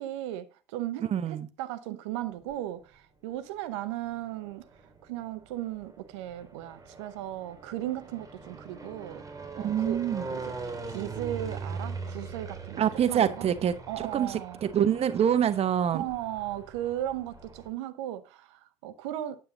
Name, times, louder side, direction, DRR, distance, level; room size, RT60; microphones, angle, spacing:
voice 1, 0.0-4.6 5.0-9.2 9.5-13.5 13.9-14.6 15.9-19.4, right 13 dB, 75° right, 0.8 m, -36 dB
voice 2, 1.1-1.5 9.6-10.2 12.8-13.7 14.1-16.0, right 9 dB, 45° right, 1.0 m, -25 dB
sound 1, 2.2-2.9 3.7-17.7, right 4 dB, 25° right, 2.9 m, -42 dB
9.8 x 7.6 x 3.9 m
hypercardioid pair, 60°, 15 cm